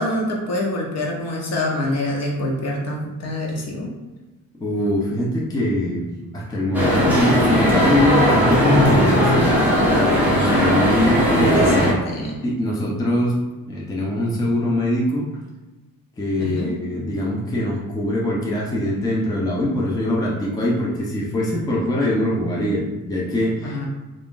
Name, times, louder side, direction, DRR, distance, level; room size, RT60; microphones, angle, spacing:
voice 1, 0.0-3.9 10.4-12.4 16.4-16.7 23.6-23.9, left 1 dB, 45° left, -1 dB, 0.8 m, -26 dB
voice 2, 4.6-6.1 6.3-9.6 10.2-12.0 12.4-13.4 13.7-15.3 16.2-23.9, left 1 dB, 10° left, -4 dB, 0.5 m, -22 dB
sound 1, 6.7-11.9, equal, 5° right, 0.9 m, -17 dB
3.5 x 2.5 x 3.7 m, 1.1 s
cardioid pair, 160°, 35 cm